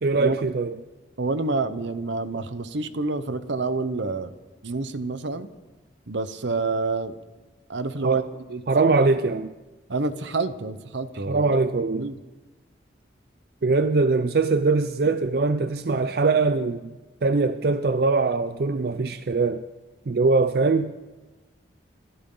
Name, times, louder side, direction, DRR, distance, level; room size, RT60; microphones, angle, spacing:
voice 1, 0.0-0.8 8.0-8.2 8.7-9.5 11.3-12.1 13.6-16.9 17.2-19.6 20.1-20.9, right 3 dB, 55° right, 0.5 m, -22 dB
voice 2, 1.2-4.3 4.6-5.5 6.1-7.2 7.7-8.2 8.5-8.6 9.9-11.5 11.9-12.2, right 3 dB, 75° right, 0.9 m, -28 dB
29.5 x 12.5 x 3.9 m
head